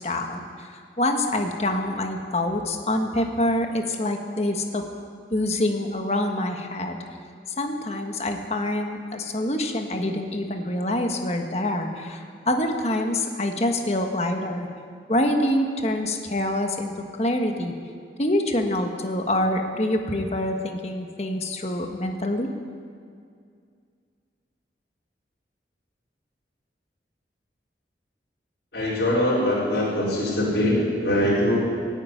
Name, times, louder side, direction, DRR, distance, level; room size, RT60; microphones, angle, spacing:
voice 1, 0.0-4.8 5.3-7.0 7.6-14.7 15.1-17.7 18.2-22.5, left 1 dB, 35° left, 4 dB, 1.4 m, -26 dB
voice 2, 28.7-31.7, left 1 dB, 75° left, -7 dB, 4.5 m, -22 dB
17.0 x 9.0 x 9.3 m, 2.2 s
head